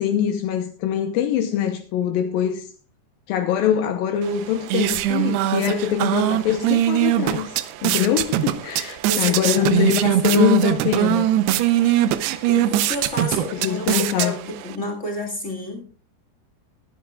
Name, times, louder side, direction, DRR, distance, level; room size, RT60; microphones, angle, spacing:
voice 1, 0.0-2.7 3.3-7.6 7.8-11.3 13.5-14.3, left 9 dB, 80° left, 2.1 m, -23 dB
sound 1, 4.2-14.8, right 12 dB, 75° right, 2.6 m, -22 dB
voice 2, 9.0-10.4 11.7-12.0 12.5-15.8, left 1 dB, 45° left, 0.9 m, -31 dB
23.0 x 10.5 x 2.4 m
omnidirectional pair, 5.1 m